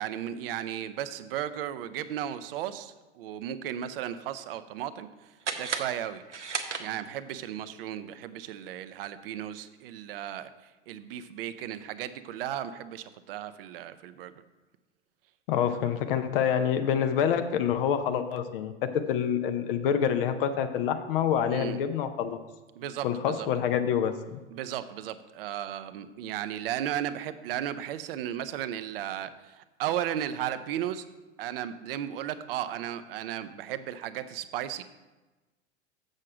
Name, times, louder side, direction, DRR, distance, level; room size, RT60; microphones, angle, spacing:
voice 1, 0.0-5.1 5.6-6.2 6.8-10.5 10.9-14.3 21.5-21.8 22.8-23.5 24.5-31.0 31.4-34.8, right 11 dB, 55° right, 12 dB, 0.6 m, -35 dB
sound 1, 5.4-7.3, right 5 dB, 90° right, 0.7 m, -35 dB
voice 2, 15.5-22.4 23.0-24.4, left 8 dB, 50° left, 9 dB, 0.7 m, -27 dB
7.4 x 6.4 x 4.7 m, 1.2 s
figure-of-eight pair, 90°, 35 cm